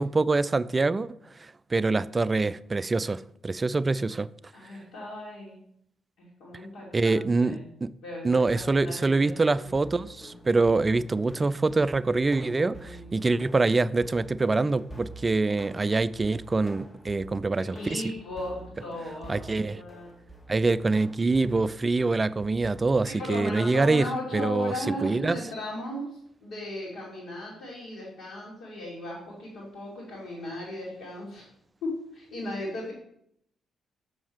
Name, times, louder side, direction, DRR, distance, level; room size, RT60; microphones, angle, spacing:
voice 1, 0.0-4.3 6.9-7.9 8.2-18.0 19.3-19.8 20.5-24.1 24.3-24.7 25.0-25.4, right 3 dB, 30° right, 0.3 m, -25 dB
voice 2, 4.5-5.6 6.2-7.7 8.0-9.7 12.5-13.3 17.6-20.2 23.1-31.4 31.8-32.9, left 1 dB, 65° left, 2.3 m, -37 dB
sound 1, 8.4-23.1, equal, 25° left, 1.3 m, -48 dB
7.2 x 6.2 x 4.6 m
figure-of-eight pair, 40°, 0 cm